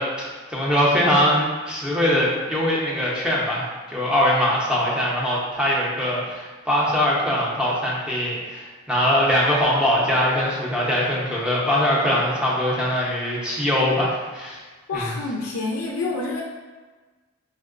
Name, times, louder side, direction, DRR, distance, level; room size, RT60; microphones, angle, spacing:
voice 1, 0.0-14.6 14.9-15.1, equal, 5° right, -6 dB, 0.5 m, -22 dB
voice 2, 14.9-16.4, left 3 dB, 80° left, -1 dB, 0.3 m, -27 dB
4.3 x 2.0 x 2.4 m, 1.3 s
head